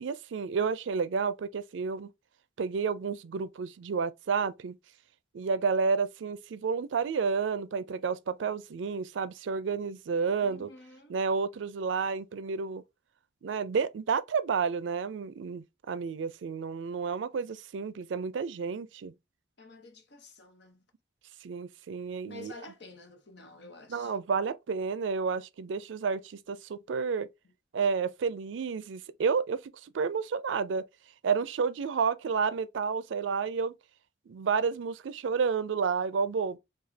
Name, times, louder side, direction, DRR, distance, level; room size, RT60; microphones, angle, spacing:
voice 1, 0.0-2.1 2.6-4.8 5.3-10.7 11.1-12.8 13.4-19.1 21.4-22.5 23.9-27.3 27.7-30.8 31.2-33.7 34.3-36.6, right 5 dB, 80° right, 0.4 m, -30 dB
voice 2, 10.4-11.2 19.6-20.8 22.3-24.1 27.4-27.5, left 2 dB, 65° left, 0.9 m, -50 dB
4.9 x 2.3 x 2.6 m
head